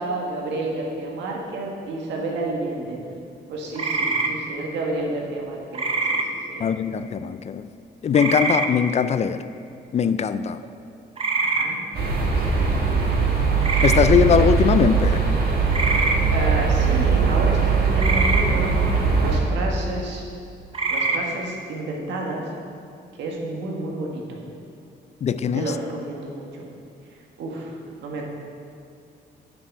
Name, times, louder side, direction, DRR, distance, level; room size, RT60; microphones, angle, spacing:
voice 1, 0.0-3.0 3.5-5.8 6.1-6.7 10.6-10.7 11.4-13.3 16.3-18.8 19.2-20.2 20.9-22.4 23.2-24.4 25.5-26.6 27.4-28.2, right 2 dB, 90° right, -1 dB, 1.8 m, -30 dB
sound 1, 3.7-4.3 5.7-6.2 8.1-8.7 11.2-11.7 13.6-14.0 15.7-16.2 18.0-18.4 20.7-21.2, right 3 dB, 30° right, 0.9 m, -23 dB
voice 2, 6.6-7.7 8.0-9.4 9.9-10.6 13.8-15.2 25.2-25.7, left 7 dB, 40° left, 12 dB, 0.4 m, -20 dB
sound 2, 11.9-19.4, right 5 dB, 60° right, 2.0 m, -20 dB
8.9 x 7.7 x 5.5 m, 2.4 s
cardioid pair, 125°, 18 cm